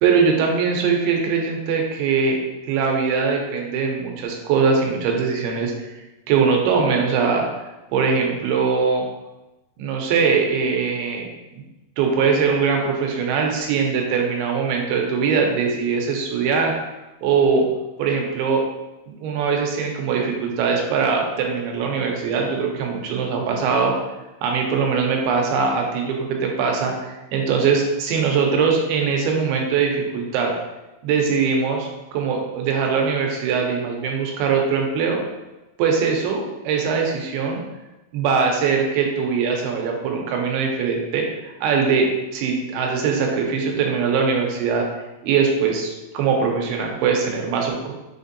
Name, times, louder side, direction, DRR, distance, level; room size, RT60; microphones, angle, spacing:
voice 1, 0.0-5.9 6.3-7.5 7.9-9.0 9.8-11.3 11.5-11.6 12.0-16.7 17.2-17.7 18.0-18.6 19.1-23.9 24.4-30.5 31.0-35.2 35.8-37.6 38.1-44.9 45.2-47.9, right 5 dB, 90° right, 1 dB, 2.7 m, -21 dB
6.1 x 2.6 x 2.6 m, 1.0 s
omnidirectional pair, 4.4 m